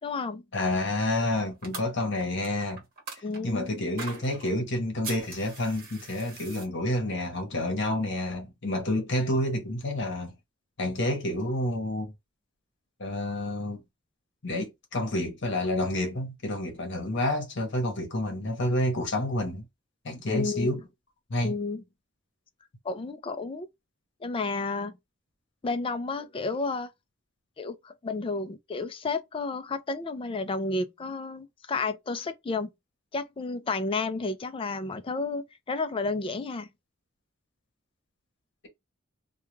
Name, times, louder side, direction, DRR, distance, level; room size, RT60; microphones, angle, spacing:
voice 1, 0.0-0.4 3.2-3.9 20.3-20.7 21.4-21.8 22.8-23.7 24.2-24.9 25.6-26.9 27.6-32.7 33.1-36.7, left 3 dB, 25° left, 0.3 m, -31 dB
voice 2, 0.5-2.8 3.2-10.3 10.8-12.1 13.0-13.8 14.4-19.7 20.0-20.8 21.3-21.5, left 1 dB, 60° left, 0.9 m, -29 dB
sound 1, 1.6-3.4 4.0-4.5 5.0-6.6, right 4 dB, 45° right, 1.0 m, -41 dB
2.3 x 2.2 x 3.0 m
head